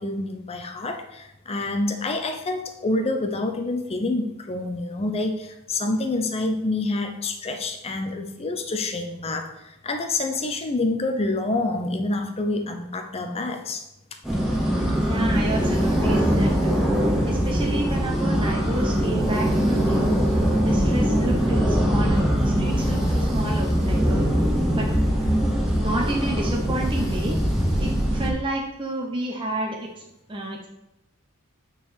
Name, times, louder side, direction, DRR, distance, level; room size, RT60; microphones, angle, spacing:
voice 1, 0.0-13.8, left 2 dB, 30° left, 5 dB, 0.6 m, -27 dB
sound 1, 14.2-28.3, equal, ahead, 1.7 m, -22 dB
voice 2, 15.0-20.3 20.6-24.2 24.7-25.0 25.8-27.4 27.8-30.0 30.3-30.7, right 1 dB, 25° right, -1 dB, 0.7 m, -30 dB
6.5 x 4.0 x 6.3 m, 0.87 s
head